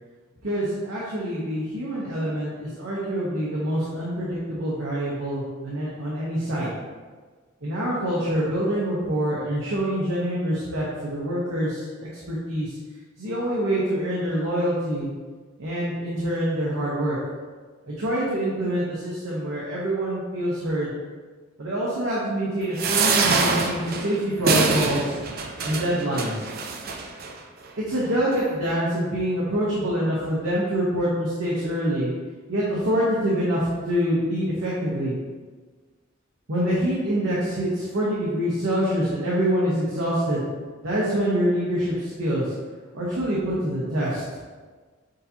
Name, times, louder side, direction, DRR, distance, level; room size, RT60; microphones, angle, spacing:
voice 1, 0.4-6.7 7.6-12.8 13.2-15.1 15.6-17.2 17.9-20.9 21.6-25.2 25.6-26.5 27.8-32.1 32.5-35.2 36.5-40.5 40.8-42.5 42.9-44.4, equal, 90° right, -7 dB, 0.9 m, -25 dB
sound 1, 22.8-27.3 28.0-28.1 28.3-28.4, right 4 dB, 50° right, 0.4 m, -24 dB
6.5 x 2.8 x 2.7 m, 1.4 s
head